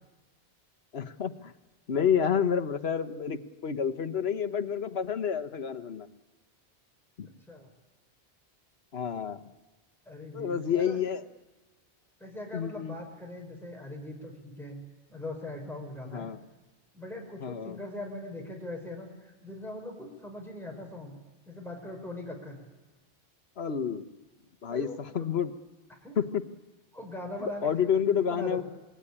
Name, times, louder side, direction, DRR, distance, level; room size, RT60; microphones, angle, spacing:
voice 1, 0.9-1.5 1.9-6.1 7.2-7.3 8.9-9.4 10.3-11.2 12.5-13.0 16.1-16.4 17.4-17.8 23.6-24.0 24.6-25.5 26.2-26.4 27.4-28.6, left 7 dB, 70° left, 8 dB, 1.4 m, -29 dB
voice 2, 10.0-11.0 12.2-14.8 15.1-16.3 16.9-21.1 21.4-22.6 24.7-25.2 26.0-26.2 26.9-27.7 28.2-28.6, left 1 dB, ahead, 0 dB, 4.9 m, -41 dB
26.0 x 21.0 x 9.9 m, 1.2 s
omnidirectional pair, 1.1 m